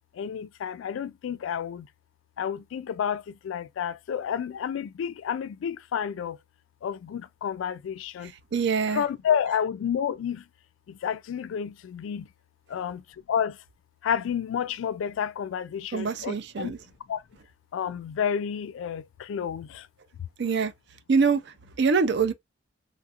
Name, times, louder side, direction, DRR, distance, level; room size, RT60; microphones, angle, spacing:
voice 1, 0.1-1.9 2.4-6.4 6.8-8.3 8.9-10.4 10.9-12.3 12.7-13.0 13.3-13.6 14.0-16.7 17.1-17.2 17.7-19.9, left 8 dB, 80° left, 0.3 m, -30 dB
voice 2, 8.2-9.0 15.9-16.8 20.4-20.7 21.1-22.3, right 5 dB, 60° right, 0.4 m, -25 dB
3.1 x 2.4 x 2.8 m
head